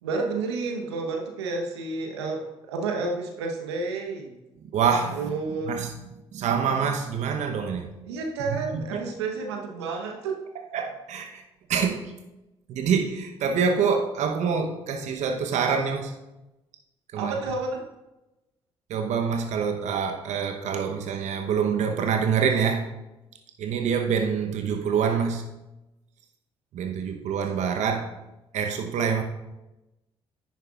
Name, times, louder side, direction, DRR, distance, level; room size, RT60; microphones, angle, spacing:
voice 1, 0.0-4.3 5.2-5.7 8.1-10.4 17.1-17.8, right 3 dB, 85° right, 2 dB, 1.0 m, -30 dB
voice 2, 4.7-5.3 5.7-5.9 6.3-7.9 8.7-9.0 10.7-11.4 11.7-12.1 12.7-16.1 17.1-17.3 18.9-22.9 23.6-25.5 26.7-28.1 28.5-29.2, right 6 dB, 60° right, 5 dB, 0.9 m, -26 dB
10.5 x 9.2 x 2.4 m, 0.98 s
hypercardioid pair, 45°, 14 cm